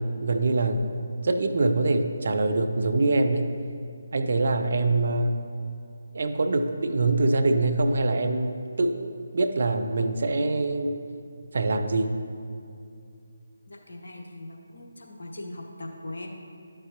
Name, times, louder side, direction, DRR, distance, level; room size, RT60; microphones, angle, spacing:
voice 1, 0.0-3.5 4.1-5.5 6.1-11.0 11.5-12.2, right 2 dB, 50° right, 8 dB, 0.5 m, -24 dB
voice 2, 13.7-16.3, left 1 dB, 60° left, 0 dB, 1.1 m, -40 dB
12.0 x 6.7 x 2.9 m, 2.4 s
figure-of-eight pair, 150°, 0 cm